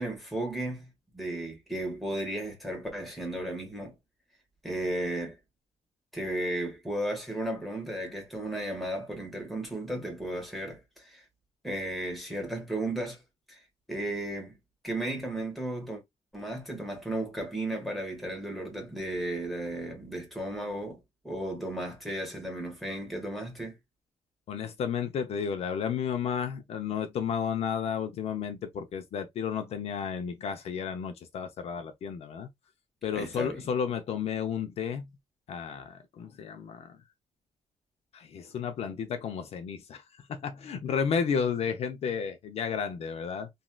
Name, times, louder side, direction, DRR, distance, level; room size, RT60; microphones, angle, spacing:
voice 1, 0.0-3.9 4.6-5.4 6.1-11.2 11.6-13.2 13.5-13.6 13.9-14.6 14.8-16.0 16.3-21.0 21.2-23.8 33.1-33.6, right 1 dB, ahead, 1.4 m, -34 dB
voice 2, 24.5-32.5 33.0-35.1 35.5-37.0 38.1-40.0 40.3-43.5, left 7 dB, 60° left, 0.6 m, -32 dB
3.1 x 2.6 x 2.2 m
cardioid pair, 150°, 12 cm